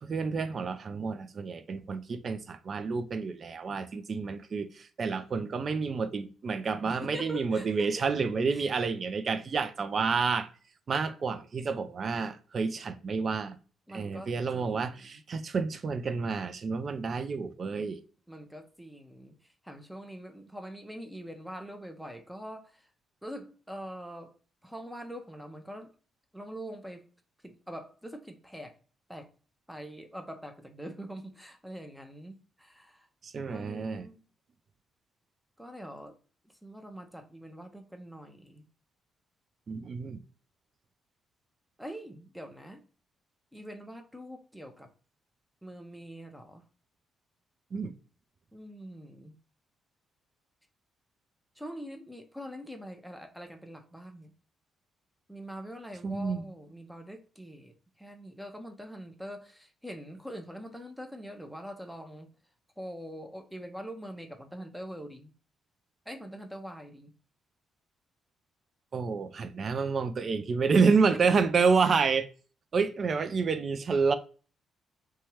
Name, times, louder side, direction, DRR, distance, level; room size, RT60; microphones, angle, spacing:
voice 1, 0.0-10.5 10.9-13.6 13.9-18.0 33.2-34.1 39.7-40.2 47.7-47.9 56.0-56.5 68.9-72.3 72.7-74.1, right 5 dB, 50° right, 0.4 m, -29 dB
voice 2, 6.8-8.0 8.5-8.6 13.9-15.2 18.3-22.9 23.2-24.3 24.6-25.9 26.3-27.1 27.4-28.8 29.1-29.3 29.7-33.1 33.5-34.2 35.6-36.2 36.6-38.6 41.8-42.8 43.5-44.9 45.6-46.6 48.5-49.3 51.6-54.3 55.3-62.3 62.8-65.3 66.1-67.1 71.4-71.5, equal, 5° right, 0.6 m, -44 dB
2.7 x 2.3 x 3.0 m
hypercardioid pair, 50°, 0 cm